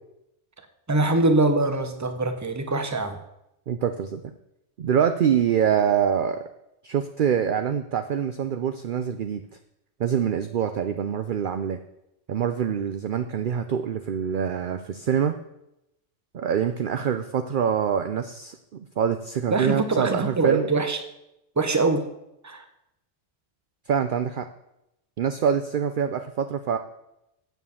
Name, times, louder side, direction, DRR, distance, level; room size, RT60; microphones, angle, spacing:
voice 1, 0.9-3.2 19.5-21.0 21.6-22.0 22.4-22.6, right 2 dB, 15° right, 7 dB, 0.8 m, -23 dB
voice 2, 3.7-4.3 4.8-6.4 6.8-9.4 10.0-11.8 12.3-15.3 16.3-20.7 23.9-24.5 25.2-26.8, right 8 dB, 55° right, 9 dB, 0.7 m, -25 dB
8.2 x 7.4 x 7.0 m, 0.85 s
omnidirectional pair, 1.2 m